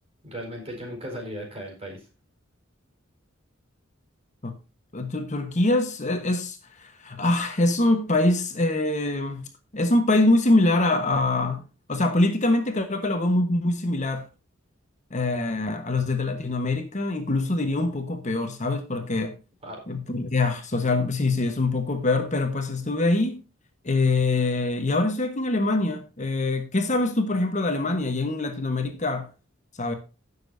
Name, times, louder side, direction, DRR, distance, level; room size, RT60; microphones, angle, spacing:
voice 1, 0.2-2.1 19.6-19.8, equal, 30° right, 4.4 m, -36 dB
voice 2, 4.9-9.4 9.7-11.6 11.9-14.3 15.1-19.4 19.9-23.4 23.8-29.3 29.8-29.9, left 2 dB, 35° left, 1.2 m, -24 dB
16.5 x 6.9 x 2.7 m
head